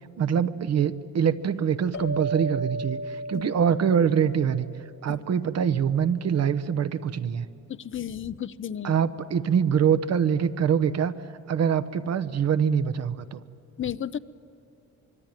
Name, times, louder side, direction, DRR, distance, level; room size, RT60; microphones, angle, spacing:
voice 1, 0.2-4.7 5.0-7.5 8.8-11.1 11.5-13.4, right 7 dB, 60° right, 12 dB, 1.1 m, -24 dB
sound 1, 1.9-4.9, right 2 dB, 70° left, 2.3 m, -34 dB
voice 2, 7.8-8.9 13.8-14.2, left 9 dB, 40° left, 16 dB, 0.8 m, -33 dB
25.0 x 22.5 x 9.1 m, 2.7 s
cardioid pair, 90°, 30 cm